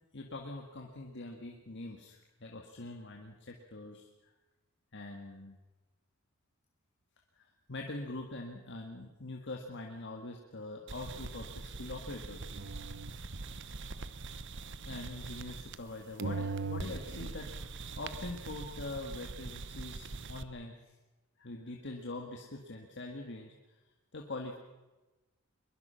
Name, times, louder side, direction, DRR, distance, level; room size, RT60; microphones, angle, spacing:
voice 1, 0.1-4.3 4.9-5.6 7.4-12.4 14.8-17.5 18.0-20.7 21.4-23.5 24.1-24.6, left 2 dB, 60° left, 2 dB, 1.9 m, -43 dB
sound 1, 10.9-15.9 16.2-20.4, right 3 dB, 60° right, 1.0 m, -41 dB
22.5 x 22.0 x 5.8 m, 1.1 s
head